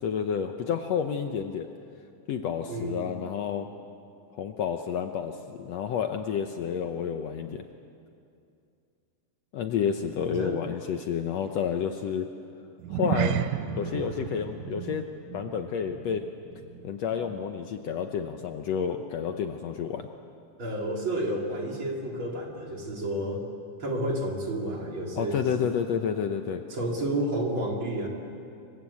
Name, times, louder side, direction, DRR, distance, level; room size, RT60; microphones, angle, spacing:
voice 1, 0.0-1.7 2.3-3.7 4.3-7.7 9.5-12.3 12.9-13.4 13.8-15.1 15.3-16.2 16.8-20.1 25.2-26.6, left 7 dB, 65° left, 6 dB, 1.9 m, -30 dB
voice 2, 2.7-3.1 10.3-10.6 20.6-23.5 23.8-25.6 26.7-28.1, right 1 dB, 40° right, 0 dB, 3.7 m, -31 dB
sound 1, 12.8-17.4 17.7-18.0 18.5-18.6, right 10 dB, 75° right, 2.3 m, -33 dB
27.5 x 23.5 x 8.5 m, 2.6 s
omnidirectional pair, 3.6 m